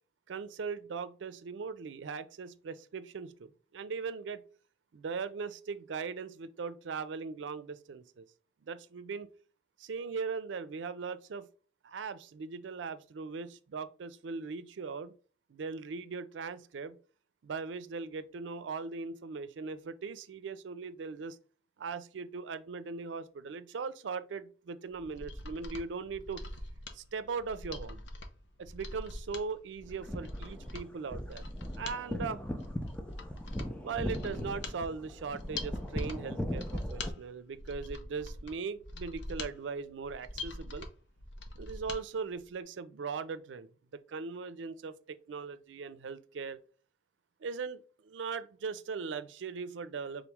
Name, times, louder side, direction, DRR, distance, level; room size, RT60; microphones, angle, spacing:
voice 1, 0.3-4.4 4.9-8.3 8.6-9.3 9.8-11.5 11.8-15.1 15.5-17.0 17.4-21.4 21.8-26.4 26.9-28.0 28.6-31.4 31.7-32.4 33.8-40.9 41.6-43.7 44.1-46.6 47.4-50.3, right 5 dB, 85° right, 0.4 m, -39 dB
Mechanisms, 24.9-42.0 42.4-42.5, left 2 dB, 75° left, 0.6 m, -44 dB
sound 1, 29.9-37.1, equal, 5° left, 0.4 m, -39 dB
3.7 x 3.0 x 3.4 m
head